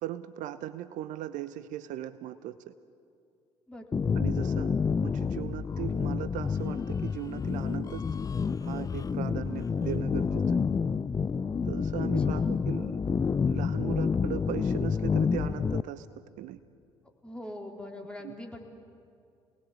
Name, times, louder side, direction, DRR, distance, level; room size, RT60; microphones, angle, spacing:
voice 1, 0.0-2.7 4.1-4.7 5.0-8.0 8.6-10.6 11.6-13.0 13.5-16.1 16.4-16.6 18.2-18.4, right 13 dB, 60° right, 13 dB, 0.8 m, -38 dB
voice 2, 3.7-4.2 12.0-12.1 12.3-12.6 17.2-18.6, left 1 dB, 5° left, 1 dB, 3.9 m, -42 dB
sound 1, 3.9-15.8, left 5 dB, 25° left, 0.5 m, -29 dB
28.0 x 19.5 x 8.4 m, 2.4 s
hypercardioid pair, 55°, 14 cm